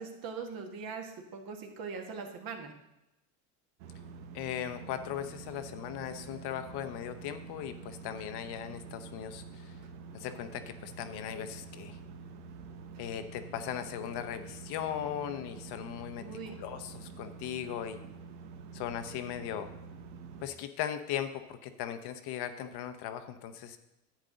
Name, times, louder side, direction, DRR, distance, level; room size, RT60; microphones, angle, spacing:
voice 1, 0.0-2.7 16.1-16.6, right 5 dB, 50° right, 3 dB, 1.8 m, -41 dB
sound 1, 3.8-20.5, right 5 dB, 75° right, 1.1 m, -47 dB
voice 2, 4.3-9.7 10.1-12.0 13.0-18.0 18.7-19.7 20.4-23.8, left 10 dB, 60° left, 9 dB, 1.0 m, -38 dB
10.5 x 8.1 x 4.0 m, 0.90 s
supercardioid pair, 105°, 44 cm